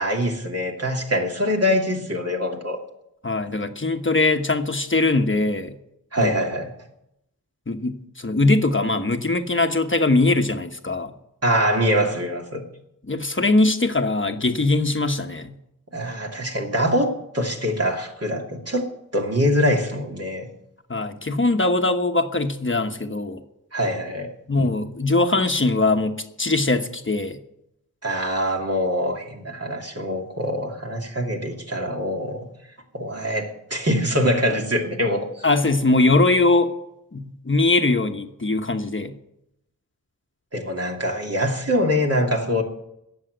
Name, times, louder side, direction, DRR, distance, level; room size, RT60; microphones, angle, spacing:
voice 1, 0.0-2.8 6.1-6.7 11.4-12.6 15.9-20.5 23.7-24.3 28.0-32.5 32.9-35.4 40.5-42.6, equal, 45° right, 1 dB, 2.7 m, -24 dB
voice 2, 3.2-5.8 6.2-6.4 7.7-11.1 13.0-15.6 20.9-23.4 24.5-27.4 35.4-36.7 37.1-39.2, left 2 dB, 35° left, 6 dB, 1.1 m, -21 dB
17.5 x 7.2 x 8.0 m, 0.83 s
wide cardioid pair, 70°, 34 cm